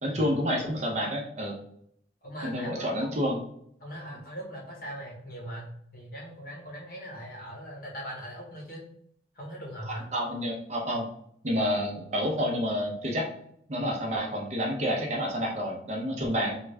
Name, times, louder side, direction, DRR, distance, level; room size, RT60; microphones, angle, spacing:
voice 1, 0.0-1.5 2.4-3.4 10.1-11.1 11.4-13.3 13.7-16.5, equal, 35° right, 0 dB, 0.6 m, -29 dB
voice 2, 2.2-3.2 3.8-8.8 9.3-10.1, equal, 50° left, -2 dB, 1.1 m, -40 dB
3.4 x 2.3 x 3.2 m, 0.69 s
head